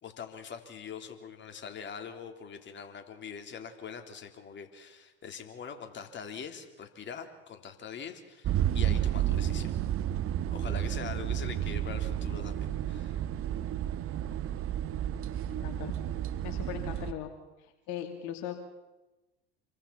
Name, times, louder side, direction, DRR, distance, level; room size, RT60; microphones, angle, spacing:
voice 1, 0.0-9.7 10.5-13.2, left 7 dB, 35° left, 5 dB, 3.4 m, -43 dB
sound 1, 8.4-17.1, right 11 dB, 45° right, 1.4 m, -31 dB
voice 2, 15.5-15.9 16.4-17.3 17.6-18.7, left 10 dB, 60° left, 5 dB, 2.5 m, -39 dB
27.0 x 24.0 x 5.9 m, 1.1 s
hypercardioid pair, 85°, 32 cm